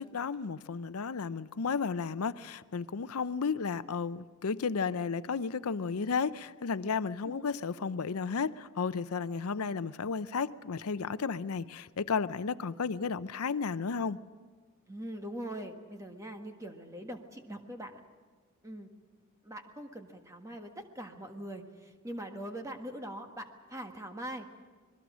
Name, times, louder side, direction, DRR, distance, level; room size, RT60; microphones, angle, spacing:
voice 1, 0.0-14.2, left 5 dB, 85° left, 14 dB, 0.6 m, -33 dB
voice 2, 7.2-7.6 14.9-18.0 18.6-18.9 19.4-24.5, right 1 dB, 15° right, 4 dB, 1.6 m, -42 dB
26.5 x 21.0 x 6.2 m, 1.4 s
head